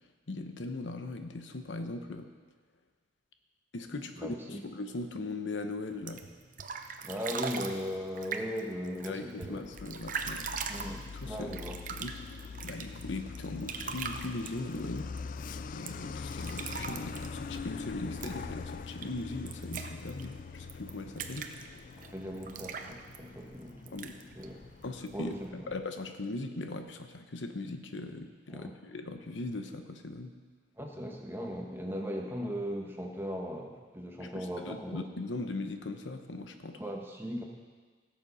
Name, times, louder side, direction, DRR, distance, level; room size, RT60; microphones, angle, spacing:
voice 1, 0.3-2.3 3.7-6.2 9.0-10.5 11.1-11.6 12.0-12.1 12.6-15.1 15.7-21.5 23.9-24.2 24.8-30.3 34.2-36.8, left 2 dB, 85° left, 7 dB, 0.9 m, -39 dB
voice 2, 3.9-4.6 7.0-9.6 10.7-11.8 22.0-24.0 24.3-24.6 25.1-25.7 28.5-28.7 30.8-35.0 36.8-37.4, equal, 15° right, 0 dB, 1.3 m, -38 dB
sound 1, 5.9-25.5, right 5 dB, 45° right, 0.7 m, -43 dB
Truck, 9.6-25.9, left 4 dB, 45° left, 0.3 m, -43 dB
17.0 x 7.2 x 5.6 m, 1.5 s
head